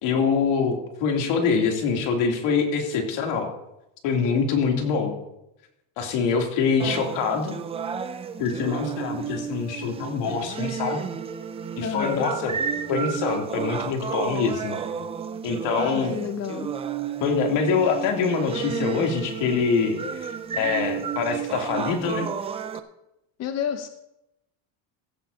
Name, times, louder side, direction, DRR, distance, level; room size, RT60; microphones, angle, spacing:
voice 1, 0.0-3.5 4.0-5.1 6.0-7.6 8.4-11.0 11.8-12.5 12.9-14.8 15.4-16.1 17.2-22.3, left 5 dB, 70° left, 1 dB, 3.0 m, -25 dB
sound 1, 6.8-22.8, right 7 dB, 15° right, 0.3 m, -32 dB
voice 2, 11.8-12.3 15.8-16.8 23.4-23.9, left 8 dB, 35° left, 7 dB, 0.7 m, -30 dB
16.0 x 14.5 x 2.8 m, 0.87 s
cardioid pair, 160°, 44 cm